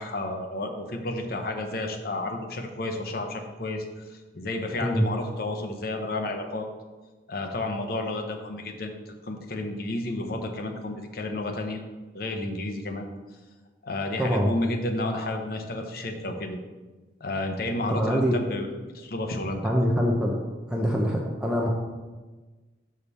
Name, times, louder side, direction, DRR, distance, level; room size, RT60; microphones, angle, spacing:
voice 1, 0.0-6.7 7.3-11.8 12.1-13.1 13.8-16.6 17.2-18.7 18.9-19.6, left 2 dB, 55° left, 4 dB, 0.8 m, -31 dB
voice 2, 14.2-14.5 17.9-18.4 19.6-20.4 20.7-21.7, equal, 5° right, -2 dB, 0.6 m, -24 dB
6.7 x 5.2 x 4.1 m, 1.3 s
head